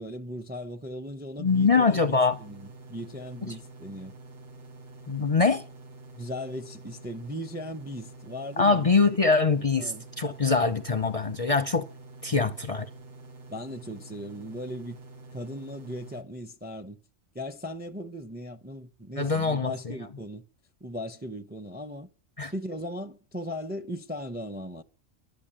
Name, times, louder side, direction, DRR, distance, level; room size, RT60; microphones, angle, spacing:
voice 1, 0.0-4.2 6.1-8.9 9.8-10.0 12.4-12.5 13.5-15.0 15.3-17.0 17.3-20.4 20.8-22.1 22.5-24.8, equal, 10° right, 0.5 m, -38 dB
voice 2, 1.4-2.4 3.5-3.6 5.1-5.6 8.6-11.9 12.2-12.9 19.2-19.9 22.4-22.5, left 4 dB, 35° left, 0.6 m, -23 dB
sound 1, 1.4-16.2, right 2 dB, 90° right, 2.1 m, -48 dB
12.0 x 9.3 x 8.8 m
omnidirectional pair, 1.3 m